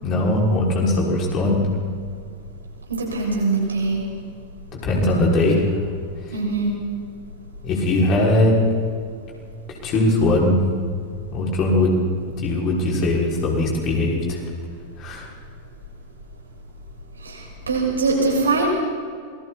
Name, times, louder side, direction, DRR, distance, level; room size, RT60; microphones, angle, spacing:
voice 1, 0.0-1.6 4.8-5.8 7.6-8.6 9.8-10.6 11.3-11.9 12.4-14.4 15.0-15.3, left 1 dB, 35° left, -3 dB, 6.2 m, -20 dB
voice 2, 2.9-4.0 6.3-6.7 17.2-18.7, right 3 dB, 75° right, -2 dB, 7.1 m, -22 dB
27.5 x 22.0 x 4.4 m, 2.1 s
figure-of-eight pair, 90°, 0 cm